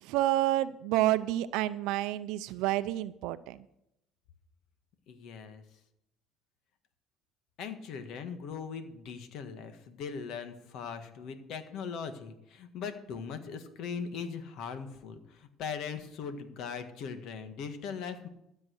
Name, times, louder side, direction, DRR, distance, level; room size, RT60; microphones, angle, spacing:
voice 1, 0.0-3.6, right 14 dB, 80° right, 13 dB, 0.5 m, -29 dB
voice 2, 5.1-5.6 7.6-18.3, left 6 dB, 65° left, 8 dB, 1.5 m, -40 dB
13.0 x 7.4 x 6.4 m, 0.80 s
cardioid pair, 125°, 0 cm